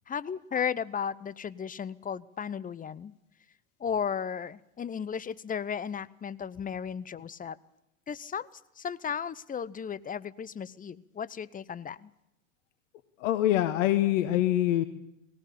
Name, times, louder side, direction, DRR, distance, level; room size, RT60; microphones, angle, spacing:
voice 1, 0.1-3.1 3.8-7.6 8.1-12.1, left 7 dB, 20° left, 19 dB, 0.8 m, -35 dB
voice 2, 13.2-14.8, left 13 dB, 70° left, 13 dB, 1.2 m, -24 dB
18.5 x 17.5 x 8.5 m, 0.85 s
hypercardioid pair, 80°, 40 cm